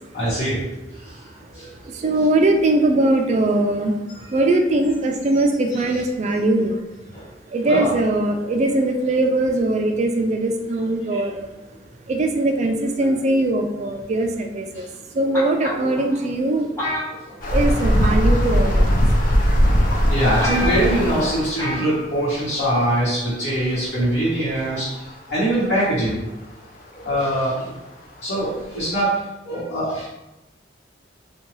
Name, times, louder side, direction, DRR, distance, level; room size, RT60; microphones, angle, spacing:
voice 1, 0.1-0.6 0.9-1.9 4.1-4.4 5.7-5.8 7.1-7.3 7.6-7.9 8.4-8.5 11.1-11.2 14.7-14.9 17.1-17.2 20.1-26.2 26.9-27.7 28.2-29.1 29.4-30.1, right 1 dB, 65° left, -12 dB, 1.2 m, -23 dB
voice 2, 1.8-4.0 4.3-6.8 7.5-11.5 12.1-14.9 15.1-16.7 17.5-19.0, right 2 dB, 40° right, 4 dB, 0.3 m, -21 dB
sound 1, 15.3-16.0 16.8-17.7 18.0-18.3 19.2-19.3 19.8-19.9 20.1-20.2 20.4-21.0 21.6-21.9 22.2-22.3, left 1 dB, 15° left, 1.1 m, -28 dB
sound 2, 17.4-21.8 23.7-23.8 24.0-24.1 25.0-25.1 27.6-27.7 28.2-28.3 28.8-28.9, equal, 45° left, 0.4 m, -19 dB
2.6 x 2.2 x 3.0 m, 1.0 s
head